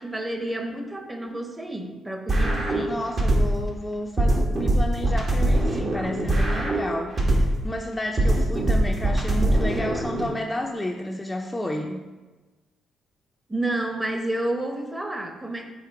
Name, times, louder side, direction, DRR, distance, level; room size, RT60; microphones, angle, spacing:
voice 1, 0.0-3.0 13.5-15.7, right 1 dB, 15° right, 4 dB, 0.9 m, -30 dB
sound 1, 2.3-3.7 4.2-7.7 8.2-10.3, right 1 dB, 45° right, 1.1 m, -22 dB
voice 2, 2.7-12.0, left 1 dB, 15° left, 1 dB, 0.5 m, -31 dB
5.7 x 3.7 x 4.8 m, 1.2 s
cardioid pair, 85°, 0 cm